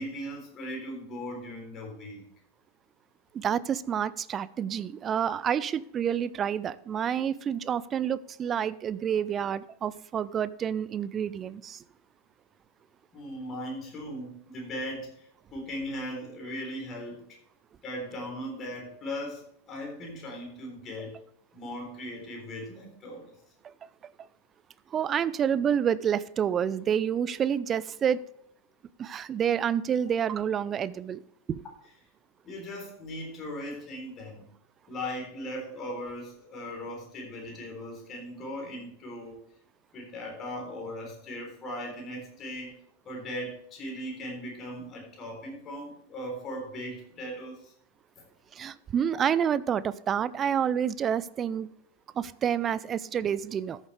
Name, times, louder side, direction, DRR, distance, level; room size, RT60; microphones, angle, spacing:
voice 1, 0.0-2.2 13.1-17.2 17.8-21.2 21.5-23.3 32.4-34.5 34.9-39.4 39.9-42.7 43.0-47.7 48.2-48.3, equal, 30° left, 0 dB, 3.7 m, -38 dB
voice 2, 3.3-11.8 24.9-28.2 29.0-31.2 31.5-31.6 48.5-51.7 52.1-53.8, right 8 dB, 25° right, 18 dB, 0.4 m, -28 dB
13.5 x 7.4 x 3.3 m, 0.71 s
figure-of-eight pair, 90°, 0 cm